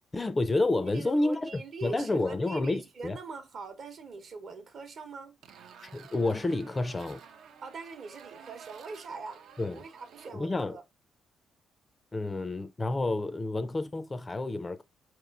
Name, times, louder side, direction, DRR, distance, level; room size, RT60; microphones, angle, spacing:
voice 1, 0.0-3.2 5.8-7.2 9.6-9.8 10.3-10.7 12.1-14.8, left 2 dB, 25° left, 0.3 m, -30 dB
voice 2, 0.8-5.4 7.6-9.4 9.7-10.8, right 4 dB, 55° right, 0.8 m, -42 dB
sound 1, 5.4-10.3, right 7 dB, 75° right, 0.5 m, -52 dB
4.5 x 2.9 x 2.3 m
cardioid pair, 90°, 0 cm